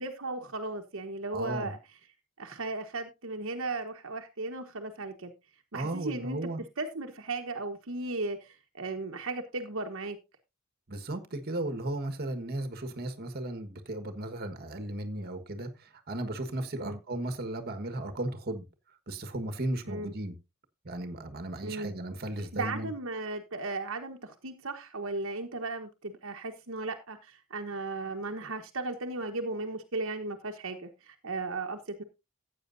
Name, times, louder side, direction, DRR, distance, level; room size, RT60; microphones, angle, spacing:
voice 1, 0.0-1.8 2.4-5.3 5.7-6.4 6.8-10.2 16.7-17.0 19.9-20.1 21.6-21.9 22.5-32.0, right 3 dB, 65° right, 1.2 m, -36 dB
voice 2, 1.3-1.7 5.7-6.6 10.9-18.6 19.1-20.4 20.8-22.9, right 1 dB, 50° right, 1.5 m, -35 dB
15.0 x 8.6 x 2.6 m
head